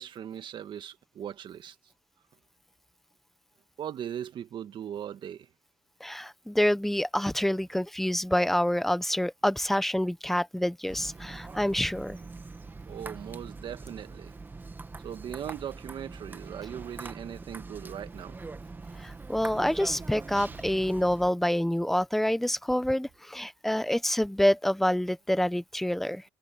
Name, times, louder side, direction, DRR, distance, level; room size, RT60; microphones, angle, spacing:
voice 1, 0.0-1.8 3.8-5.5 12.9-14.3 15.0-18.4, right 9 dB, 45° right, 1.7 m, -39 dB
voice 2, 6.0-12.2 19.0-26.2, left 1 dB, ahead, 1.0 m, -27 dB
sound 1, 10.9-21.3, right 3 dB, 15° right, 1.6 m, -43 dB
cardioid pair, 110°, 11 cm